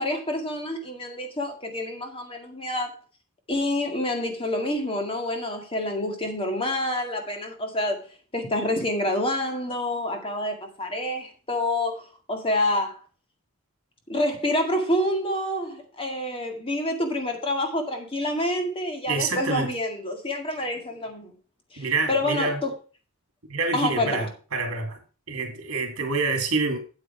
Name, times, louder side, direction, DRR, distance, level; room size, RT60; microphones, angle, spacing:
voice 1, 0.0-2.9 3.5-8.0 8.3-13.0 14.1-21.3 21.7-22.7 23.7-24.3, left 1 dB, 25° left, 2.0 m, -27 dB
voice 2, 19.1-19.7 21.8-22.6 23.5-25.0 25.3-26.8, right 3 dB, 65° right, 2.3 m, -27 dB
8.7 x 8.0 x 4.6 m
head